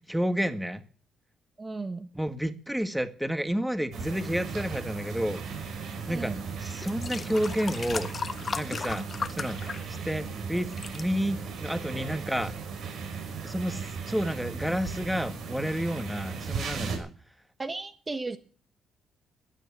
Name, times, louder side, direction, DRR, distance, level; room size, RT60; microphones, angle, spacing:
voice 1, 0.1-0.8 2.1-5.4 6.1-6.3 6.6-8.1 8.6-9.1 9.3-9.6 9.9-12.5 13.4-17.1, equal, 5° right, 10 dB, 1.6 m, -30 dB
voice 2, 1.6-2.1 6.1-6.5 17.6-18.4, right 3 dB, 25° right, 9 dB, 1.3 m, -35 dB
sound 1, 3.9-17.0, right 5 dB, 70° right, 5.4 m, -37 dB
sound 2, 6.8-10.3 10.6-11.0 11.7-11.8, left 5 dB, 40° left, 1.3 m, -36 dB
14.5 x 9.1 x 8.8 m, 0.42 s
cardioid pair, 90°, 0 cm